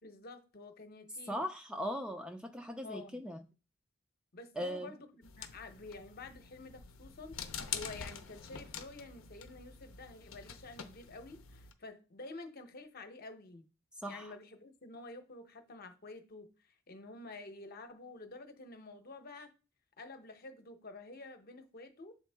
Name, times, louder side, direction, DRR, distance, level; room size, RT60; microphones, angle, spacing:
voice 1, 0.0-1.4 2.8-3.2 4.3-7.4 7.7-13.7 14.1-19.5 20.0-22.2, left 3 dB, 50° left, 0.8 m, -49 dB
voice 2, 1.3-3.4 4.6-4.9 14.0-14.3, equal, 5° right, 0.4 m, -39 dB
sound 1, 5.2-11.7, left 7 dB, 85° left, 0.7 m, -46 dB
7.7 x 3.6 x 3.4 m
head